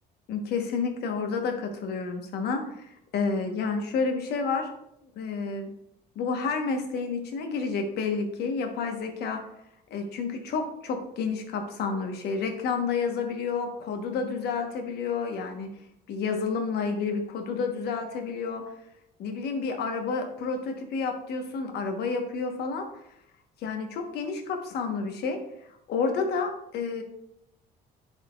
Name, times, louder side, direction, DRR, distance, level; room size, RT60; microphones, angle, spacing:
voice 1, 0.3-4.7 5.2-5.7 6.1-9.4 9.9-15.7 16.1-18.6 19.2-22.9 23.6-25.4 25.9-27.0, left 4 dB, 70° left, 4 dB, 1.2 m, -30 dB
10.5 x 4.4 x 2.4 m, 0.78 s
cardioid pair, 110°, 17 cm